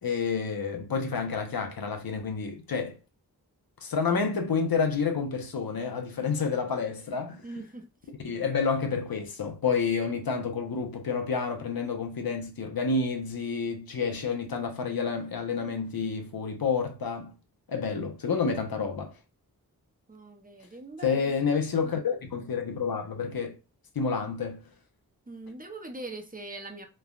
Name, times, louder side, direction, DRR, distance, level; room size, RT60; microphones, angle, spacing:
voice 1, 0.0-3.0 3.8-7.4 8.2-17.3 17.7-19.1 21.0-23.6 23.9-24.6, left 5 dB, 70° left, 0.7 m, -29 dB
voice 2, 7.4-7.9 20.1-21.3 21.8-21.9 25.3-26.9, right 2 dB, 20° right, 0.6 m, -41 dB
3.3 x 2.1 x 2.3 m
cardioid pair, 50°, 38 cm